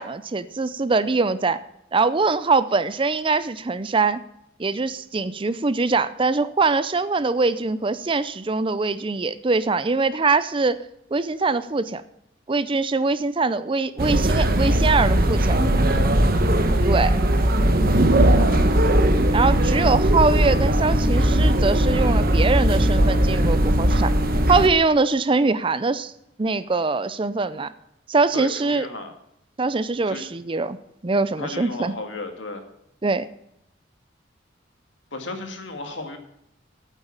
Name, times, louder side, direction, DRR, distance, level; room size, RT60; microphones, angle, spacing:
voice 1, 0.0-1.6 1.9-4.2 4.6-10.8 11.1-12.0 12.5-15.6 16.8-17.2 19.3-24.1 24.5-26.1 26.4-27.7 28.1-28.9 29.6-30.8 31.0-31.9 33.0-33.3, right 3 dB, 25° right, 15 dB, 0.5 m, -22 dB
sound 1, 14.0-24.7, right 1 dB, 50° right, 1.1 m, -19 dB
voice 2, 18.3-18.7 28.3-29.1 30.1-30.2 31.4-32.7 35.1-36.2, left 2 dB, 80° left, 6 dB, 1.9 m, -34 dB
8.9 x 8.3 x 8.4 m, 0.78 s
head